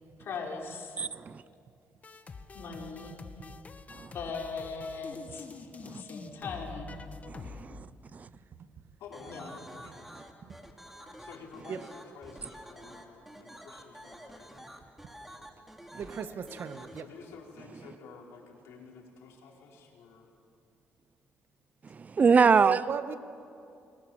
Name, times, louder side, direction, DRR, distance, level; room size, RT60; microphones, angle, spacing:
voice 1, 0.2-0.9 2.5-3.1 4.1-6.9 7.6-7.7 9.3-9.5, left 4 dB, 60° left, -1 dB, 5.2 m, -39 dB
voice 2, 1.0-1.4 3.9-4.1 5.8-6.0 7.3-7.9 8.1-8.3 21.8-22.8, right 5 dB, 35° right, 18 dB, 0.6 m, -25 dB
sound 1, 2.0-7.6, left 4 dB, 35° left, 1.6 m, -46 dB
voice 3, 8.1-8.7 10.5-10.6 11.7-11.8 15.9-17.1 22.4-23.2, right 7 dB, 55° right, 9 dB, 1.5 m, -36 dB
voice 4, 9.0-10.1 11.2-14.5 16.7-20.3, left 5 dB, 90° left, -1 dB, 4.9 m, -50 dB
sound 2, 9.1-17.0, equal, 5° right, 2.7 m, -49 dB
30.0 x 23.0 x 7.4 m, 2.6 s
cardioid pair, 105°, 4 cm